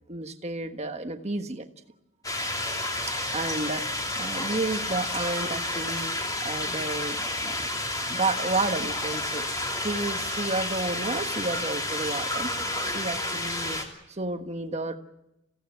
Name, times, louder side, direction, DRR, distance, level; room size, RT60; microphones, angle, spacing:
voice 1, 0.1-1.7 3.3-6.1 6.4-7.7 8.1-9.5 9.8-12.5 12.9-13.8 14.1-14.9, right 3 dB, 30° right, 6 dB, 1.4 m, -31 dB
sound 1, 2.2-13.8, left 1 dB, 15° left, 3.0 m, -30 dB
27.0 x 16.5 x 9.4 m, 0.93 s
head